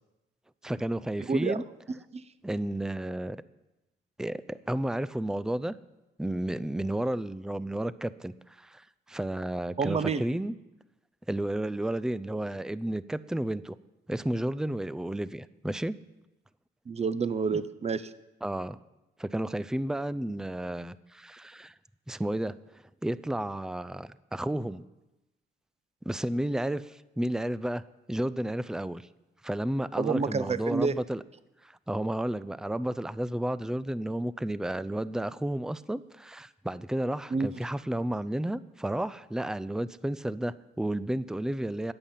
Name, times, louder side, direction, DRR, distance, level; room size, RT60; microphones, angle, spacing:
voice 1, 0.6-1.6 2.4-3.4 4.2-5.7 6.2-10.5 11.3-13.8 14.1-16.0 17.5-17.6 18.4-18.8 19.2-21.7 22.1-24.8 26.0-27.8 28.1-29.1 29.4-31.2 31.6-41.9, right 1 dB, 5° right, 16 dB, 0.5 m, -32 dB
voice 2, 1.3-1.6 2.1-2.2 9.8-10.2 16.9-18.1 30.0-30.9 37.3-37.5, right 5 dB, 30° right, 14 dB, 0.9 m, -28 dB
20.5 x 8.5 x 5.7 m, 0.99 s
cardioid pair, 90°, 20 cm